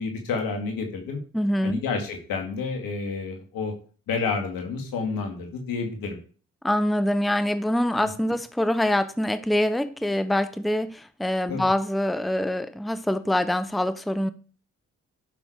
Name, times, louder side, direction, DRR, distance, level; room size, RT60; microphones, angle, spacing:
voice 1, 0.0-1.2 1.6-3.7 4.1-6.2 8.0-8.1 11.5-11.6, left 4 dB, 75° left, 2.4 m, -29 dB
voice 2, 1.3-1.8 6.6-14.3, left 1 dB, ahead, 0.8 m, -25 dB
11.5 x 6.1 x 4.7 m
hypercardioid pair, 40°, 34 cm